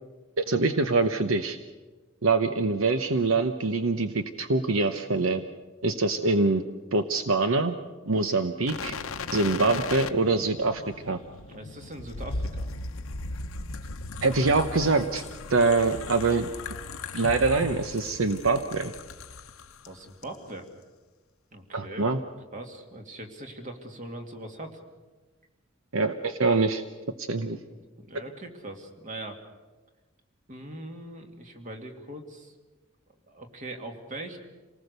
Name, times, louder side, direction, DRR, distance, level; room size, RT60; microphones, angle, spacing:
voice 1, 0.4-1.6 2.2-5.4 5.8-6.6 6.9-7.7 8.1-8.9 9.3-11.2 14.2-15.2 15.5-16.5 17.1-18.9 21.7-22.2 25.9-26.8 27.2-27.6, right 3 dB, 70° right, 9 dB, 0.9 m, -24 dB
sound 1, 8.7-19.9 20.2-20.4, left 3 dB, 80° left, 0.9 m, -37 dB
voice 2, 11.5-12.7 19.9-20.6 21.5-22.1 22.5-24.8 28.0-29.4 30.5-32.5 33.3-34.4, right 1 dB, 40° right, 4 dB, 2.3 m, -41 dB
27.5 x 19.0 x 6.7 m, 1.3 s
head